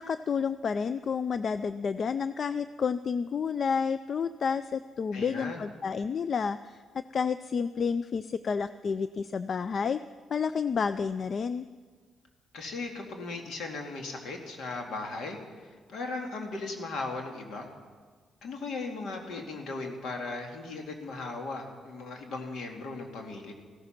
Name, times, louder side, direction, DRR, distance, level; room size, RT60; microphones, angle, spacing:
voice 1, 0.0-6.8 7.1-10.0 10.3-11.6, left 6 dB, 55° left, 13 dB, 0.4 m, -30 dB
voice 2, 5.1-5.6 12.5-15.4 15.9-17.7 18.4-23.5, left 3 dB, 75° left, 2 dB, 2.3 m, -37 dB
15.0 x 14.5 x 5.9 m, 1.5 s
cardioid pair, 70°, 0 cm